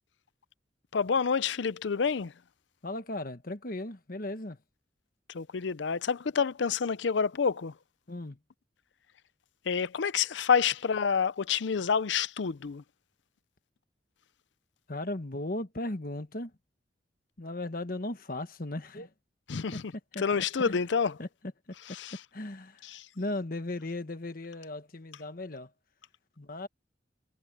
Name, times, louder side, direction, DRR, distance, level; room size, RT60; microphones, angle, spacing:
voice 1, 0.9-2.3 5.3-7.7 9.7-12.8 19.5-19.9 20.2-21.1 21.9-22.2 22.9-23.1, left 6 dB, 75° left, 0.5 m, -28 dB
voice 2, 2.8-4.6 8.1-8.4 14.9-16.5 17.4-19.1 19.7-19.8 20.1-20.8 21.2-21.3 21.7-21.8 22.3-25.7 26.4-26.7, left 2 dB, 50° left, 1.3 m, -37 dB
head